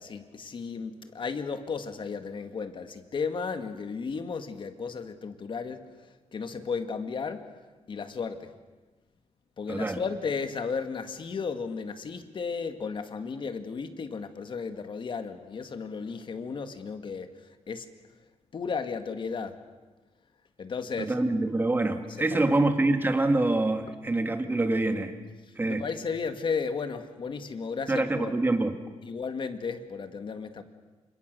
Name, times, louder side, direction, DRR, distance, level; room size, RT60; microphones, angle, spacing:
voice 1, 0.0-7.5 7.9-8.5 9.6-17.9 18.5-19.6 20.6-21.1 22.3-22.4 25.7-28.4 29.0-30.6, left 5 dB, 45° left, 8 dB, 2.0 m, -34 dB
voice 2, 9.7-10.0 21.0-25.1 25.6-25.8 27.9-28.7, right 2 dB, 15° right, 7 dB, 2.2 m, -25 dB
29.0 x 26.5 x 6.8 m, 1.3 s
wide cardioid pair, 150°, 12 cm